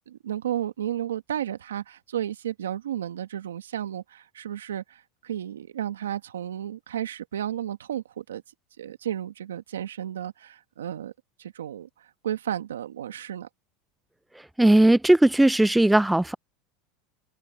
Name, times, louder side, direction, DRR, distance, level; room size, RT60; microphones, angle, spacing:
voice 1, 0.1-8.4 8.8-11.1 11.4-13.5, right 10 dB, 90° right, 1.8 m, -33 dB
voice 2, 14.6-16.3, right 1 dB, 5° right, 0.5 m, -18 dB
open air
hypercardioid pair, 95°, 0 cm